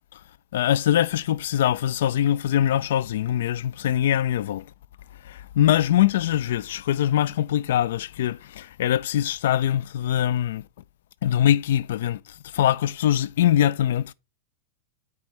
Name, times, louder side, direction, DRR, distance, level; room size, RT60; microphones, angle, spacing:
voice 1, 0.5-4.6 5.2-10.6 11.2-14.1, left 11 dB, 55° left, 0.3 m, -23 dB
8.4 x 4.9 x 3.1 m
figure-of-eight pair, 90°, 0 cm